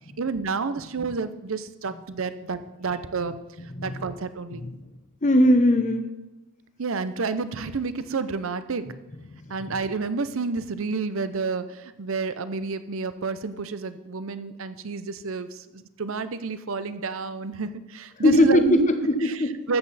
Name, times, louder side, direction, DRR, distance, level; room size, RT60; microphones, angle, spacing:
voice 1, 0.2-3.3 3.8-4.6 6.8-8.8 9.5-18.9 19.3-19.4 19.7-19.8, right 4 dB, 60° right, 12 dB, 0.6 m, -29 dB
voice 2, 3.8-4.1 4.5-4.8 5.2-6.1 9.3-9.8 18.2-19.6, left 1 dB, 35° left, 8 dB, 0.9 m, -21 dB
13.5 x 7.8 x 4.1 m, 1.0 s
head